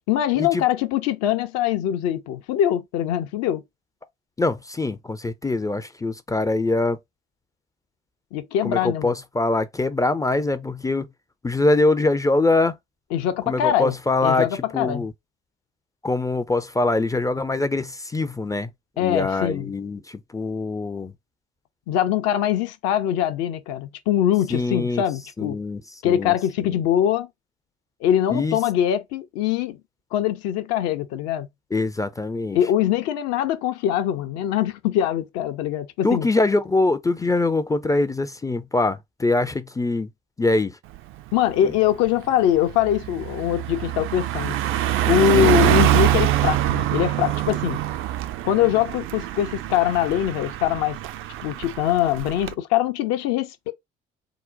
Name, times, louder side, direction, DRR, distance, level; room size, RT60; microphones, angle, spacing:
voice 1, 0.1-3.6 8.3-9.2 13.1-14.0 14.2-15.1 19.0-19.7 21.9-25.6 26.0-27.3 28.0-29.8 30.1-31.5 32.5-36.3 41.3-44.6 45.1-47.8 48.4-51.0 51.4-53.7, left 11 dB, 55° left, 0.6 m, -23 dB
voice 2, 4.4-7.0 8.6-11.1 11.4-12.8 13.5-14.5 14.7-15.1 16.0-18.7 19.0-21.1 24.5-25.0 25.4-26.3 26.6-26.7 28.3-28.6 31.7-32.6 36.0-40.1 40.4-40.8 41.6-41.7 45.3-45.6, left 2 dB, 10° left, 0.4 m, -23 dB
Car passing by, 41.0-41.2 41.6-52.5, right 13 dB, 45° right, 0.4 m, -24 dB
3.8 x 2.1 x 3.8 m
figure-of-eight pair, 50°, 31 cm